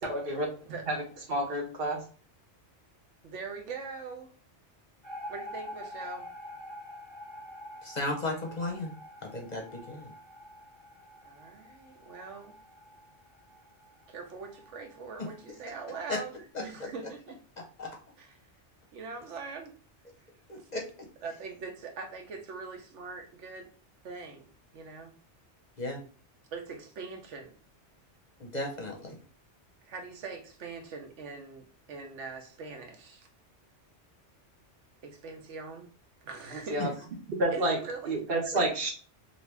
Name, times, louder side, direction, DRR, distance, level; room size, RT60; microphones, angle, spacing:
voice 1, 0.0-0.5 0.9-1.0 1.3-2.0 36.7-36.9 37.4-37.8 38.1-38.9, right 1 dB, 55° right, 1.1 m, -29 dB
voice 2, 3.2-4.3 5.3-6.3 11.2-12.5 14.1-17.4 18.2-18.4 18.9-19.7 20.6-20.7 21.2-23.7 24.0-25.1 26.5-27.6 29.8-33.3 35.0-35.9 36.2-37.1 37.5-38.2, right 4 dB, 80° right, 1.1 m, -42 dB
sound 1, 5.0-16.2, left 1 dB, 15° right, 1.0 m, -47 dB
voice 3, 7.8-8.9 9.2-10.1 16.1-16.2 17.8-17.9 20.5-20.8 25.8-26.0 28.4-29.1, left 2 dB, 45° left, 0.7 m, -34 dB
2.9 x 2.6 x 3.2 m
omnidirectional pair, 1.2 m